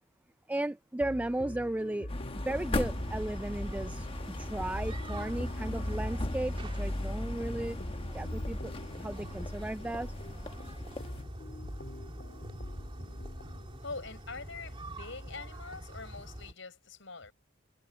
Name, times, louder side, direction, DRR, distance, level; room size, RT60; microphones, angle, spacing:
voice 1, 0.5-2.1 2.5-7.8 8.1-8.7 9.0-10.1, right 1 dB, 10° right, 0.3 m, -35 dB
sound 1, 1.0-13.8, left 1 dB, 50° left, 2.3 m, -46 dB
sound 2, 2.1-11.2, left 1 dB, 30° left, 1.1 m, -37 dB
sound 3, 2.5-16.5, right 1 dB, 25° right, 2.2 m, -45 dB
voice 2, 13.8-17.3, left 4 dB, 70° left, 6.4 m, -44 dB
head